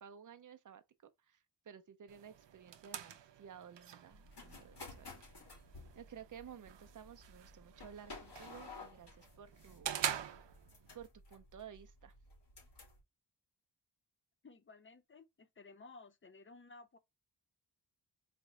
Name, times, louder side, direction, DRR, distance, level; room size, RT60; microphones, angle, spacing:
voice 1, 0.0-5.3 5.9-10.0 10.9-12.1, right 8 dB, 45° right, 0.6 m, -54 dB
sound 1, 2.1-11.1, right 9 dB, 85° right, 0.7 m, -46 dB
sound 2, 4.1-13.0, left 3 dB, 70° left, 2.8 m, -55 dB
voice 2, 14.4-17.0, left 3 dB, 30° left, 0.6 m, -56 dB
4.3 x 3.0 x 3.6 m
wide cardioid pair, 140°, 42 cm